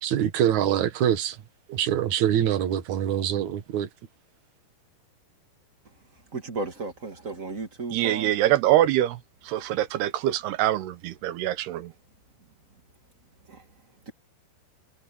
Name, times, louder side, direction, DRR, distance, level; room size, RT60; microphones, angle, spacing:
voice 1, 0.0-1.4 1.7-3.9, right 10 dB, 55° right, 2.4 m, -24 dB
voice 2, 6.3-8.3 13.5-13.6 14.0-14.1, right 3 dB, 35° right, 1.3 m, -34 dB
voice 3, 7.9-11.9, right 13 dB, 75° right, 2.9 m, -24 dB
omnidirectional pair, 4.9 m